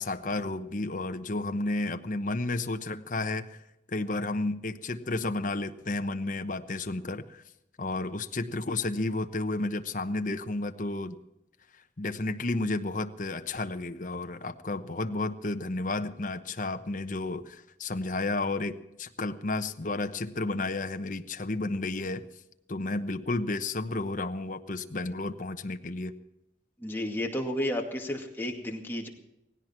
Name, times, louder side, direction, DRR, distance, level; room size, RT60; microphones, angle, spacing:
voice 1, 0.0-3.6 3.9-7.4 7.8-11.1 12.0-22.2 22.7-26.1, left 2 dB, 45° left, 8 dB, 1.0 m, -32 dB
voice 2, 26.8-29.1, left 1 dB, 10° left, 0 dB, 2.2 m, -32 dB
18.0 x 17.0 x 4.5 m, 0.84 s
head